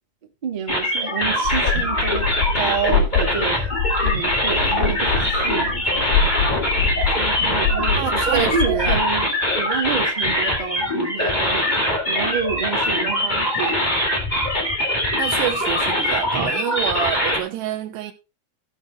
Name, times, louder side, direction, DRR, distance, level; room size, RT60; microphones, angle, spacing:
voice 1, 0.4-3.7 4.0-6.2 7.1-13.9, right 6 dB, 40° right, 0.6 m, -29 dB
sound 1, 0.7-17.4, left 1 dB, 10° left, 2.6 m, -22 dB
sound 2, 1.5-9.0, left 6 dB, 85° left, 4.3 m, -25 dB
voice 2, 7.9-9.0 13.0-13.1 15.2-18.1, right 11 dB, 80° right, 3.3 m, -27 dB
15.0 x 5.5 x 4.3 m
omnidirectional pair, 4.9 m